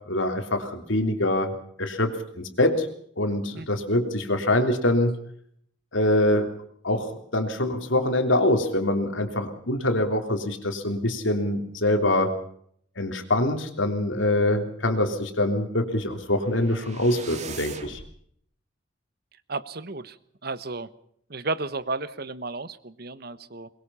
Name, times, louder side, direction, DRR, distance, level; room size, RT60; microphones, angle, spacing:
voice 1, 0.0-2.9 3.2-5.2 5.9-6.5 6.8-12.3 13.0-18.0, left 1 dB, 80° left, 6 dB, 3.4 m, -24 dB
sound 1, 15.9-18.1, right 5 dB, 35° right, 2.4 m, -41 dB
voice 2, 19.5-20.2 20.4-20.9 21.3-23.7, right 3 dB, 50° right, 14 dB, 1.2 m, -33 dB
22.5 x 22.0 x 5.7 m, 0.66 s
head